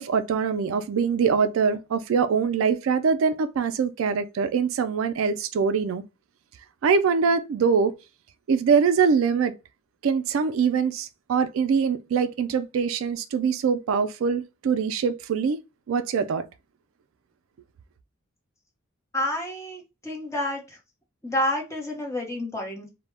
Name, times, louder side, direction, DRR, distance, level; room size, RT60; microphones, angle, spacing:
voice 1, 0.0-6.0 6.8-7.9 8.5-9.5 10.0-15.6 15.9-16.5, right 6 dB, 70° right, 0.3 m, -23 dB
voice 2, 19.1-20.6 21.2-22.9, left 1 dB, 15° left, 0.7 m, -29 dB
2.1 x 2.0 x 3.2 m
head